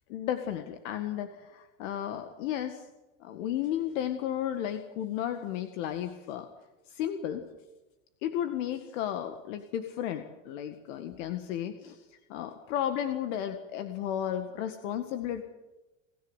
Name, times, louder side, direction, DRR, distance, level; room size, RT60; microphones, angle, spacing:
voice 1, 0.1-2.8 3.2-6.5 6.9-7.4 8.2-12.0 12.3-15.4, left 10 dB, 70° left, 7 dB, 2.0 m, -33 dB
27.5 x 14.5 x 8.2 m, 1.1 s
hypercardioid pair, 100°, 39 cm